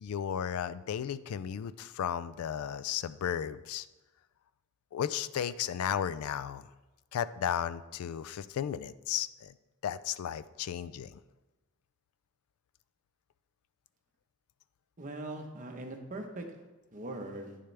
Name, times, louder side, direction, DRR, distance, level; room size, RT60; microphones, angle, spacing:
voice 1, 0.0-3.9 4.9-6.7 7.1-9.5 9.8-11.2, left 9 dB, 90° left, 16 dB, 0.3 m, -34 dB
voice 2, 15.0-16.4 16.9-17.6, right 2 dB, 40° right, 3 dB, 1.0 m, -41 dB
9.2 x 6.6 x 3.4 m, 1.1 s
head